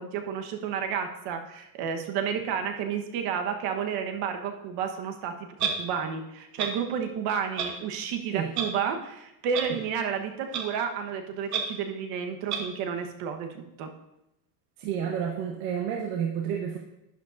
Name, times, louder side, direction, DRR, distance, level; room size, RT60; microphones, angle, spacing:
voice 1, 0.0-13.9, right 7 dB, 55° right, 5 dB, 1.3 m, -31 dB
Clock, 5.6-5.7 6.6-6.7 7.6-7.7 8.5-8.7 9.5-9.6 10.5-10.6 11.5-11.6 12.5-12.6, right 7 dB, 40° right, 1.2 m, -28 dB
voice 2, 14.8-16.8, right 8 dB, 85° right, 0 dB, 1.3 m, -30 dB
11.5 x 9.7 x 2.6 m, 0.88 s
cardioid pair, 170°, 44 cm